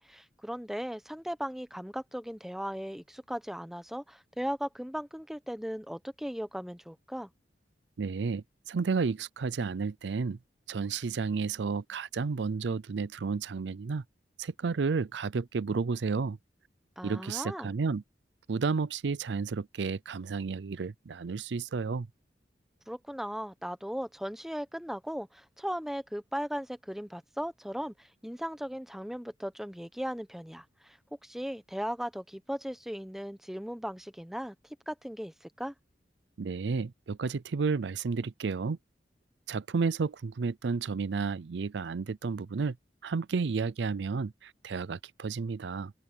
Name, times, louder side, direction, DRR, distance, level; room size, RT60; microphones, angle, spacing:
voice 1, 0.0-7.3 17.0-17.7 22.9-31.0 31.2-34.5 34.9-35.7, equal, ahead, 1.0 m, -37 dB
voice 2, 8.0-10.4 10.7-14.0 14.4-16.4 17.0-18.0 18.5-22.1 36.4-38.8 39.5-42.8 43.0-45.9, right 4 dB, 80° right, 0.5 m, -32 dB
open air
head